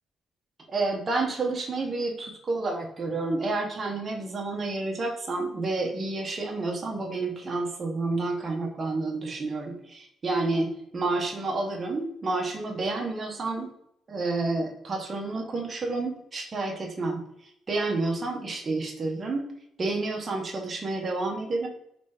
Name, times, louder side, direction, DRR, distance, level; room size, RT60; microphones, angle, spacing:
voice 1, 0.7-13.7 14.1-19.5 19.8-21.7, right 3 dB, 35° right, 0 dB, 0.9 m, -30 dB
4.0 x 3.2 x 3.4 m, 0.76 s
cardioid pair, 90°, 0 cm